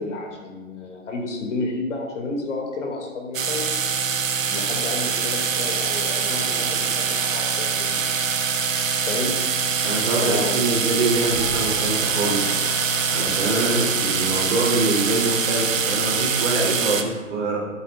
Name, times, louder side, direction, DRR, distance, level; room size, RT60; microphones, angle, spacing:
voice 1, 0.0-3.7 4.5-8.1 9.1-9.5 10.2-10.5 13.6-13.9, left 3 dB, 65° left, 0 dB, 2.3 m, -31 dB
sound 1, 3.3-17.0, right 6 dB, 75° right, 1.0 m, -24 dB
voice 2, 9.8-12.6 13.1-13.7 14.0-17.6, right 2 dB, 55° right, -2 dB, 3.0 m, -24 dB
Cheering / Applause, 10.8-17.0, left 1 dB, 10° left, 0.3 m, -39 dB
11.0 x 8.3 x 2.4 m, 1.2 s
hypercardioid pair, 130°, 40 cm